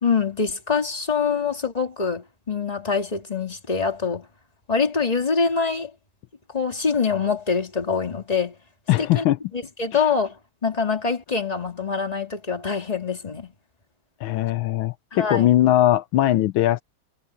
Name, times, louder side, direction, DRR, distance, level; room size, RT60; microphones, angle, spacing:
voice 1, 0.0-4.3 4.7-5.9 6.5-8.6 9.1-9.2 9.5-10.4 10.6-13.5 15.1-15.5, left 5 dB, 20° left, 2.2 m, -24 dB
voice 2, 8.9-9.4 9.9-10.0 14.2-16.8, left 13 dB, 80° left, 1.4 m, -20 dB
omnidirectional pair, 2.3 m